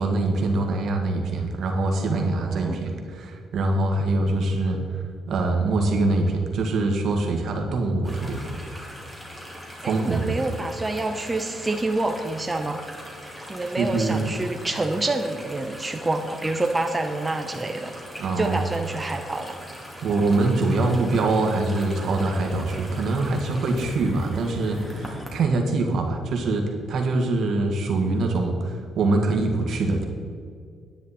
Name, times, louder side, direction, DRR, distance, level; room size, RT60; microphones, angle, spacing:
voice 1, 0.0-4.8 5.3-8.4 9.8-10.3 13.8-14.3 18.2-18.6 20.0-30.1, right 2 dB, 65° right, 2 dB, 1.7 m, -24 dB
voice 2, 2.1-2.8 9.8-12.8 13.5-17.9 18.4-19.6, right 2 dB, 20° right, 5 dB, 0.7 m, -27 dB
sound 1, 8.0-25.3, equal, 10° left, 2.4 m, -41 dB
10.5 x 9.3 x 4.2 m, 2.2 s
cardioid pair, 90°, 0 cm